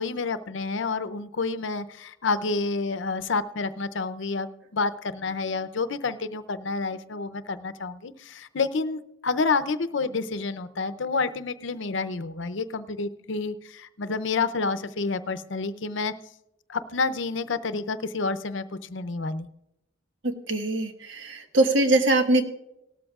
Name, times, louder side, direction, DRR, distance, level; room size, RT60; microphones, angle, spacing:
voice 1, 0.0-16.1 16.7-19.5, left 4 dB, 70° left, 13 dB, 0.6 m, -29 dB
voice 2, 20.2-22.4, right 2 dB, 70° right, 5 dB, 1.4 m, -22 dB
18.0 x 13.0 x 2.4 m, 0.86 s
head